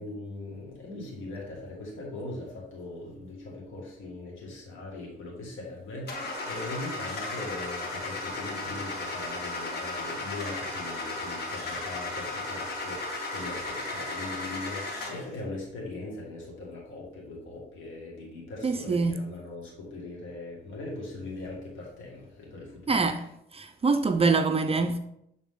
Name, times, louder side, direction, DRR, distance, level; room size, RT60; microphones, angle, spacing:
voice 1, 0.0-23.0, left 2 dB, 80° left, 2.1 m, -40 dB
Car / Engine starting, 6.1-15.3, left 2 dB, 55° left, 1.7 m, -35 dB
voice 2, 18.6-19.2 22.9-23.2 23.5-25.0, right 4 dB, 30° right, 0.5 m, -24 dB
7.8 x 3.9 x 3.7 m
cardioid pair, 90°, 20 cm